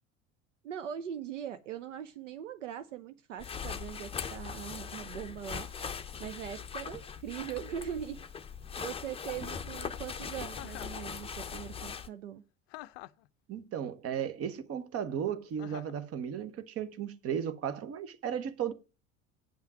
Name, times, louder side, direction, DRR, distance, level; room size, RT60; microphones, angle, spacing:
voice 1, 0.6-5.7 6.2-8.2 8.8-12.4, right 9 dB, 70° right, 0.7 m, -41 dB
sound 1, 3.4-12.1, left 6 dB, 15° left, 0.7 m, -40 dB
Chuckle chortle, 10.5-11.0 12.7-13.3 15.6-16.0, left 18 dB, 55° left, 0.5 m, -46 dB
voice 2, 13.5-18.7, right 8 dB, 35° right, 1.1 m, -35 dB
8.9 x 5.6 x 6.1 m
figure-of-eight pair, 65°, 38 cm